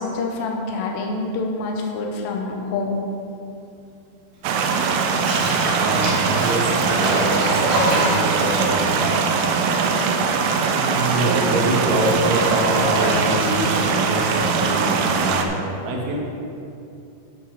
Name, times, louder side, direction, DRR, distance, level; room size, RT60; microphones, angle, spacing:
voice 1, 0.0-3.0, left 3 dB, 85° left, 1 dB, 1.9 m, -26 dB
sound 1, 4.4-15.5, right 5 dB, 90° right, 3.2 m, -21 dB
Bathtub (filling or washing), 4.5-10.3 10.6-14.2, right 1 dB, 50° right, 3.0 m, -27 dB
voice 2, 5.7-9.0 10.7-15.6 15.8-16.2, right 1 dB, 70° right, -2 dB, 1.7 m, -25 dB
10.0 x 6.3 x 5.9 m, 2.6 s
omnidirectional pair, 5.5 m